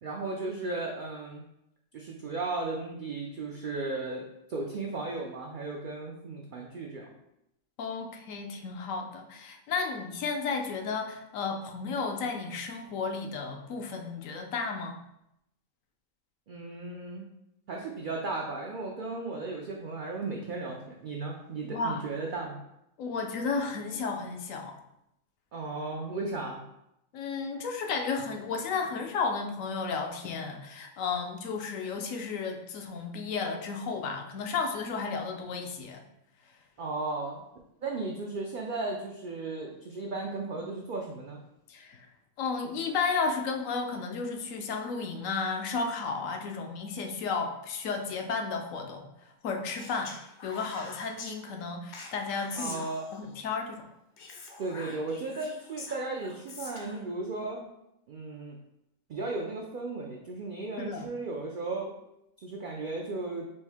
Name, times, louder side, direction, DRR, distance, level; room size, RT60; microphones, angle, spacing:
voice 1, 0.0-1.4 1.9-7.1 16.5-17.3 17.7-22.6 25.5-26.6 36.8-37.4 37.8-41.4 52.5-53.0 54.6-57.6 58.1-58.6 59.1-61.9 62.4-63.5, right 3 dB, 75° right, 0 dB, 0.4 m, -35 dB
voice 2, 7.8-15.0 21.6-22.0 23.0-24.8 27.1-36.0 41.7-42.1 42.4-50.1 50.4-52.8 53.1-53.8 60.8-61.1, left 4 dB, 75° left, 4 dB, 1.0 m, -33 dB
Speech, 49.8-51.3 51.9-53.4 54.2-57.0, left 3 dB, 55° left, 0.5 m, -44 dB
4.4 x 2.6 x 3.4 m, 0.83 s
omnidirectional pair, 1.4 m